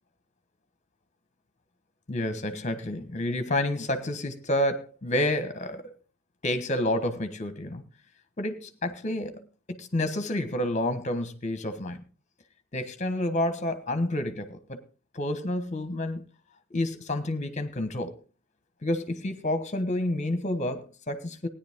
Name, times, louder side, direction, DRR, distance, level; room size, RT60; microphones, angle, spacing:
voice 1, 2.1-5.9 6.4-7.8 8.4-12.0 12.7-14.8 15.1-16.2 16.7-18.2 18.8-21.5, left 1 dB, 35° left, 10 dB, 1.2 m, -29 dB
17.0 x 10.0 x 3.6 m, 0.34 s
head